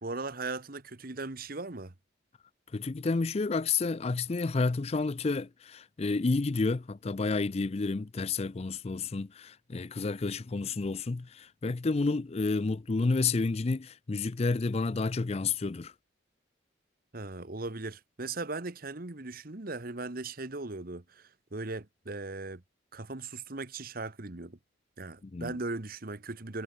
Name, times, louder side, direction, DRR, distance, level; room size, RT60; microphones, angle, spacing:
voice 1, 0.0-1.9 17.1-22.6 22.9-24.6 25.0-26.6, right 3 dB, 50° right, 1.3 m, -38 dB
voice 2, 2.7-15.9 25.3-25.6, left 3 dB, 30° left, 0.4 m, -30 dB
head